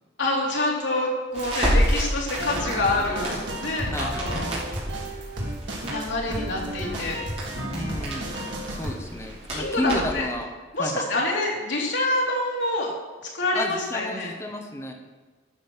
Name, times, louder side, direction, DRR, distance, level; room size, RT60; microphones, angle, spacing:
voice 1, 0.2-4.6 5.8-7.2 9.5-10.3 10.7-12.9 13.3-14.3, left 2 dB, 80° left, -3 dB, 3.0 m, -26 dB
Crackle, 1.3-10.3, equal, 35° right, 3.9 m, -30 dB
sound 1, 2.3-8.9, right 1 dB, 85° right, 2.4 m, -33 dB
voice 2, 3.9-4.3 7.7-8.3 8.7-10.5 10.8-11.0 13.5-14.9, left 1 dB, 15° left, 3 dB, 1.1 m, -32 dB
12.0 x 6.2 x 6.2 m, 1.4 s
head